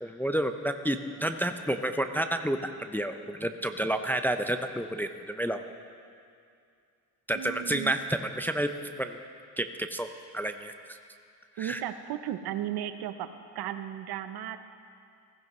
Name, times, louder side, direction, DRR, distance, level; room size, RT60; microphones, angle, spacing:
voice 1, 0.0-5.6 7.3-9.2 9.6-11.0 11.6-11.8, right 1 dB, 5° left, 7 dB, 0.5 m, -30 dB
voice 2, 7.3-7.9 11.6-13.3 13.5-14.6, right 11 dB, 65° right, 10 dB, 0.8 m, -35 dB
16.0 x 15.0 x 3.1 m, 2.4 s
supercardioid pair, 85°, 40 cm